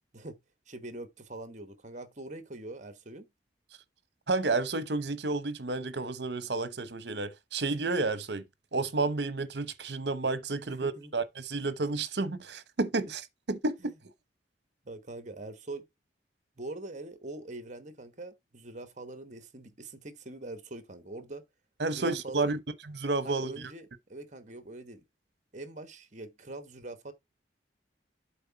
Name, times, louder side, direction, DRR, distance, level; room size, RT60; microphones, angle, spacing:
voice 1, 0.7-3.3 10.7-11.1 13.8-13.9 14.8-15.8 16.6-21.4 21.9-22.6 23.2-25.0 25.5-27.1, right 2 dB, 40° right, 1.1 m, -43 dB
voice 2, 4.3-8.4 8.7-13.2 13.5-13.8 21.8-22.6 22.9-23.5, right 3 dB, 65° right, 1.0 m, -31 dB
7.9 x 3.5 x 5.7 m
head